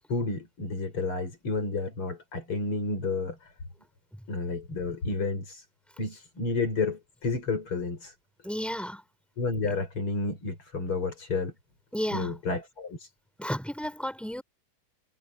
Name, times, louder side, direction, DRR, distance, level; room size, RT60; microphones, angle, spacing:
voice 1, 0.1-3.5 4.3-5.6 6.0-8.1 9.4-11.5 12.1-13.1, left 3 dB, 80° left, 6.6 m, -31 dB
voice 2, 8.4-9.0 11.9-12.3 13.4-14.4, equal, ahead, 5.0 m, -32 dB
omnidirectional pair, 2.3 m